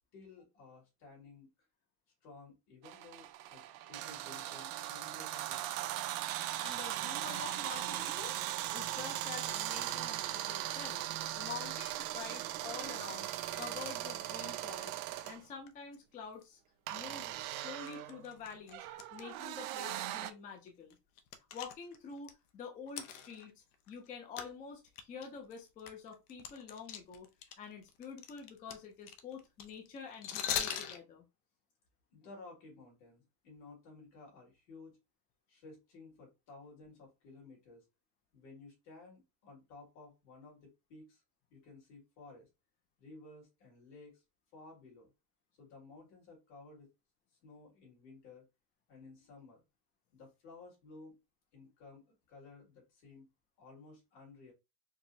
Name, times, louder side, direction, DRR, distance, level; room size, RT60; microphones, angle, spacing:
voice 1, 0.1-1.5 2.2-3.6 3.9-6.0 32.1-35.0 35.5-37.8 38.3-41.2 41.5-42.5 43.0-44.2 44.5-45.1 45.6-46.9 47.4-48.5 48.9-49.6 50.1-51.2 51.5-53.3 53.6-54.5, left 3 dB, 65° left, -2 dB, 2.2 m, -55 dB
sound 1, 2.8-15.4 16.9-20.3, right 14 dB, 75° right, 0.6 m, -39 dB
voice 2, 6.6-8.4 8.7-11.0 11.3-13.3 13.5-15.0 15.2-16.6 16.9-18.9 19.1-21.0 21.5-27.3 27.6-31.2, left 6 dB, 20° left, 2 dB, 0.3 m, -47 dB
sound 2, 15.2-15.3 15.7-16.0 16.4-16.5 17.0-17.1 17.9-19.2 19.5-19.6 20.2-20.3 20.7-22.3 22.9-24.1 24.4-24.5 24.9-27.5 27.8-31.0, left 9 dB, 85° left, 0.7 m, -40 dB
4.5 x 2.0 x 2.7 m, 0.25 s
cardioid pair, 160°, 43 cm